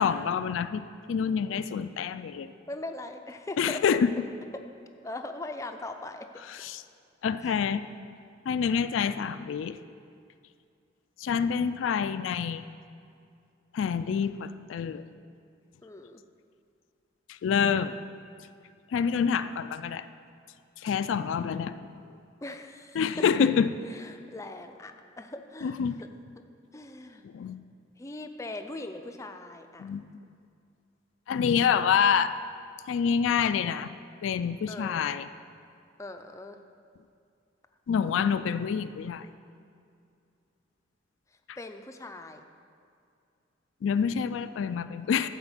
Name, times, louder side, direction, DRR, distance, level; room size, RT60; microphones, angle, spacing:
voice 1, 0.0-2.5 3.6-4.1 6.5-6.8 7.2-7.9 8.5-9.8 11.2-12.7 13.7-15.0 17.3-18.0 18.9-20.0 20.8-21.9 23.0-23.7 25.6-26.0 27.2-27.6 29.8-30.2 31.3-32.3 32.9-33.9 34.2-35.3 37.9-39.3 41.5-41.6 43.8-45.3, left 7 dB, 85° left, 12 dB, 0.3 m, -27 dB
voice 2, 2.5-3.8 5.0-6.3 15.8-16.2 22.4-23.0 23.9-26.1 26.7-27.2 28.0-29.9 34.7-35.0 36.0-36.6 41.6-42.5, left 2 dB, 15° left, 6 dB, 0.4 m, -40 dB
12.0 x 4.3 x 7.2 m, 2.4 s
head